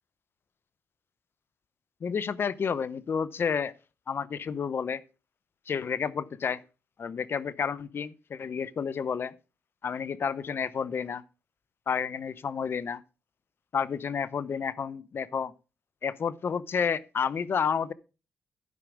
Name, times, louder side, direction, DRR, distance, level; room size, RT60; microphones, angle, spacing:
voice 1, 2.0-3.7 4.1-5.0 5.7-6.6 7.0-9.3 9.8-11.2 11.9-13.0 13.7-15.5 16.0-17.9, left 6 dB, 55° left, 0.7 m, -30 dB
12.0 x 4.9 x 4.9 m
supercardioid pair, 55°, 5 cm